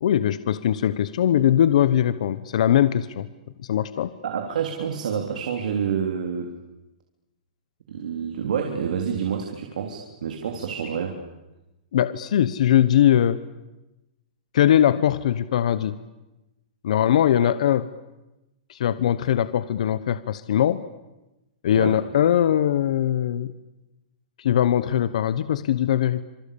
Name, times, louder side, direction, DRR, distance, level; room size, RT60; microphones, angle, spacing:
voice 1, 0.0-3.3 3.6-4.1 11.9-13.4 14.5-16.0 16.8-17.8 18.7-20.8 21.6-23.5 24.4-26.2, left 10 dB, 60° left, 14 dB, 1.0 m, -21 dB
voice 2, 4.2-6.5 7.9-11.2 17.4-17.5 21.7-22.0, right 7 dB, 80° right, 3 dB, 3.6 m, -28 dB
27.0 x 25.5 x 8.7 m, 0.99 s
supercardioid pair, 180°, 4 cm